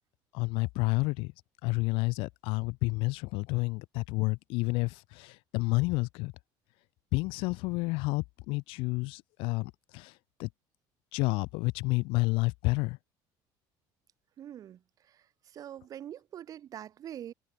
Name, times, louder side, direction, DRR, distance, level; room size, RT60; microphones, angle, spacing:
voice 1, 0.3-1.3 1.6-6.3 7.1-10.1 10.4-10.5 11.1-13.0, left 25 dB, 75° left, 0.5 m, -30 dB
voice 2, 14.4-14.8 15.1-17.3, right 10 dB, 40° right, 3.1 m, -44 dB
cardioid pair, 150°, 9 cm